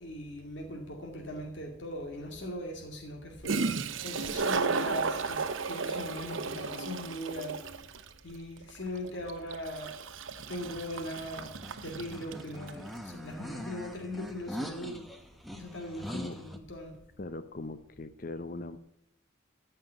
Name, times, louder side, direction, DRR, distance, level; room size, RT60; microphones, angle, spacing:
voice 1, 0.0-10.0 10.5-15.0 15.5-17.0, left 1 dB, 65° left, 2 dB, 2.1 m, -40 dB
Toilet flush, 1.4-1.5 3.2-3.3 3.4-12.8, right 4 dB, 75° right, 0.9 m, -34 dB
sound 1, 10.5-16.6, equal, ahead, 0.9 m, -43 dB
voice 2, 17.2-18.8, left 2 dB, 45° left, 13 dB, 0.7 m, -39 dB
15.0 x 5.7 x 9.1 m, 0.80 s
head